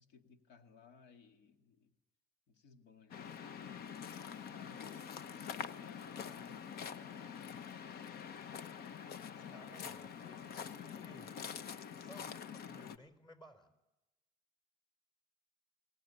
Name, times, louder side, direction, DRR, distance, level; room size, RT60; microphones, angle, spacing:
voice 1, 0.0-1.9 2.5-7.3 9.3-9.7, left 5 dB, 85° left, 6 dB, 2.1 m, -61 dB
Waves surf, 3.1-13.0, left 7 dB, 65° left, 1.0 m, -46 dB
voice 2, 8.7-11.4 12.0-13.7, equal, 30° left, 8 dB, 4.1 m, -59 dB
23.0 x 18.5 x 9.9 m, 1.0 s
cardioid pair, 110°, 17 cm